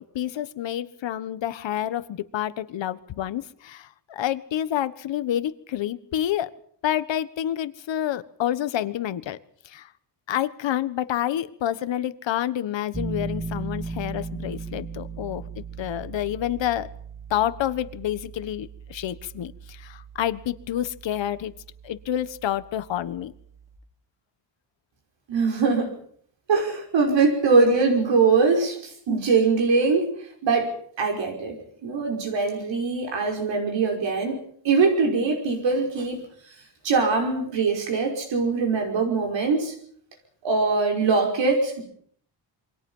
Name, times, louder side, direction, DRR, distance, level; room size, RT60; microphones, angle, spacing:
voice 1, 0.0-6.5 6.8-9.4 9.6-9.9 10.3-16.9 17.3-21.5 21.8-23.3, left 11 dB, 80° left, 13 dB, 1.5 m, -28 dB
Piano, 12.9-23.8, right 4 dB, 5° right, 1.9 m, -38 dB
voice 2, 25.3-25.9 26.5-30.1 30.4-34.4 34.6-36.2 36.8-39.7 40.4-41.8, right 4 dB, 80° right, 2 dB, 5.4 m, -22 dB
28.0 x 24.5 x 5.6 m, 0.62 s
wide cardioid pair, 160°, 44 cm